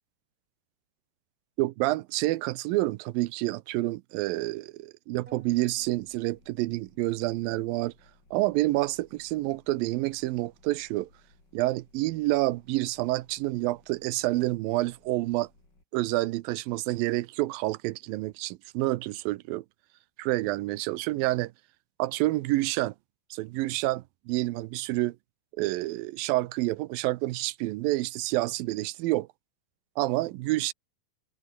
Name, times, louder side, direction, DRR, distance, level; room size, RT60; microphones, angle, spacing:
voice 1, 1.6-7.9 8.3-11.1 11.5-15.5 15.9-19.6 20.2-21.5 22.0-22.9 23.3-25.2 25.6-29.3 30.0-30.7, right 18 dB, 90° right, 2.5 m, -28 dB
sound 1, 5.3-15.8, left 2 dB, 30° left, 7.0 m, -62 dB
sound 2, 5.3-7.2, right 4 dB, 25° right, 3.3 m, -59 dB
omnidirectional pair, 4.1 m